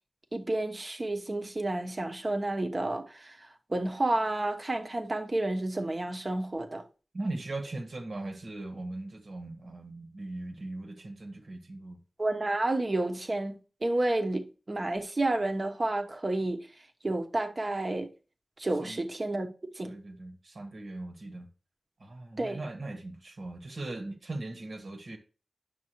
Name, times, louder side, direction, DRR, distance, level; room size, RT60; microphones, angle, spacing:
voice 1, 0.3-6.8 12.2-16.7 17.0-18.1 18.6-19.5 19.7-20.0 22.4-22.6, right 2 dB, 45° right, 1.1 m, -30 dB
voice 2, 7.1-12.0 18.8-19.0 19.8-21.5 22.0-25.2, right 2 dB, 75° right, 1.7 m, -39 dB
9.6 x 6.0 x 3.1 m
cardioid pair, 50°, 0 cm